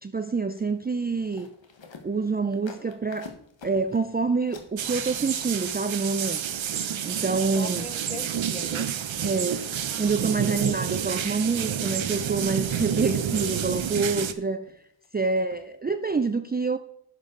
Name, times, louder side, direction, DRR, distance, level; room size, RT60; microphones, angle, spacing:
voice 1, 0.0-1.5 2.0-3.3 3.6-6.4 7.1-7.8 9.2-9.6 10.0-14.7 15.1-16.8, right 4 dB, 20° right, 0.5 m, -27 dB
sound 1, 0.6-6.6 8.1-8.2 8.5-9.9 10.3-10.9 11.2-11.6 12.1-12.4 12.7-13.4 13.8-14.3 14.6-15.1 15.5-15.7 16.0-16.1, left 4 dB, 70° left, 1.4 m, -50 dB
sound 2, 4.8-14.3, right 8 dB, 75° right, 0.8 m, -29 dB
voice 2, 7.3-8.9 10.4-10.5 15.2-15.5, left 2 dB, 15° left, 0.8 m, -41 dB
11.0 x 7.3 x 3.8 m
cardioid pair, 45°, 46 cm